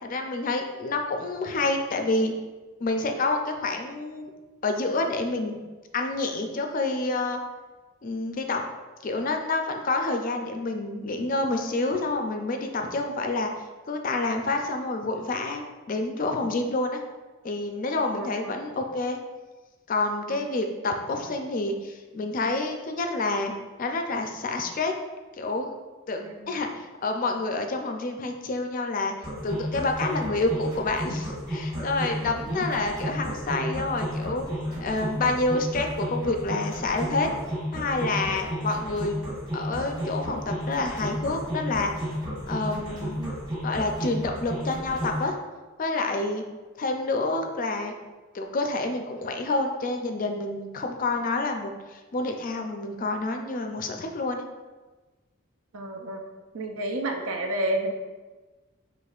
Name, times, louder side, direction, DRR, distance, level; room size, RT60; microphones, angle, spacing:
voice 1, 0.0-2.3 2.8-4.3 4.6-5.6 5.9-7.4 8.0-8.6 9.0-13.5 13.9-17.0 17.4-19.2 19.9-23.5 23.8-24.9 25.4-25.7 26.1-29.1 29.4-34.5 34.8-37.3 37.7-41.9 42.5-43.2 43.6-45.4 45.8-46.4 46.8-47.9 48.3-54.4, left 2 dB, 40° left, 4 dB, 0.4 m, -28 dB
voice 2, 18.1-18.6 20.3-20.4 26.2-26.7 32.5-32.6 43.2-43.3 55.7-56.2 56.5-57.9, right 1 dB, 80° right, 3 dB, 0.6 m, -31 dB
sound 1, 29.2-45.2, equal, 20° right, 1.2 m, -33 dB
5.9 x 3.0 x 2.4 m, 1.3 s
head